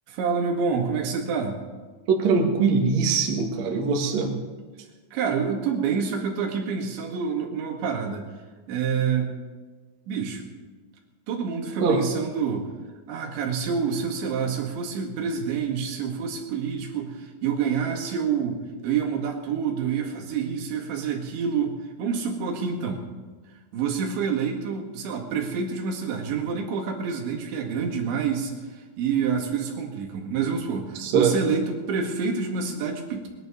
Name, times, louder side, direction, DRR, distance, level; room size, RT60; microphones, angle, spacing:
voice 1, 0.1-1.6 5.1-8.3 8.7-9.4 10.1-10.5 11.3-12.7 13.1-23.0 23.7-33.3, right 6 dB, 80° right, 0 dB, 4.2 m, -27 dB
voice 2, 2.1-4.3 11.8-12.0 31.0-31.3, right 5 dB, 50° right, 1 dB, 2.4 m, -22 dB
20.5 x 11.0 x 5.4 m, 1.4 s
omnidirectional pair, 5.1 m